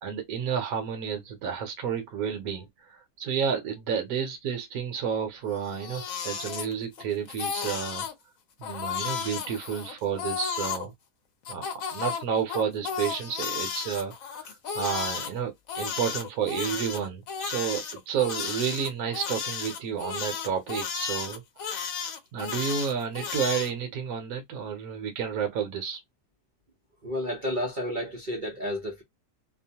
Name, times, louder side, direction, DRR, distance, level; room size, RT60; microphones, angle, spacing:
voice 1, 0.0-8.1 8.6-10.9 11.5-21.9 22.3-26.0, right 7 dB, 65° right, 1.1 m, -31 dB
Crying sobbing, 5.6-7.0 7.3-8.1 8.6-10.8 11.4-15.3 15.7-23.7, left 7 dB, 60° left, 1.0 m, -33 dB
voice 2, 27.0-29.0, left 1 dB, 50° right, 0.6 m, -31 dB
2.9 x 2.1 x 2.7 m
omnidirectional pair, 1.8 m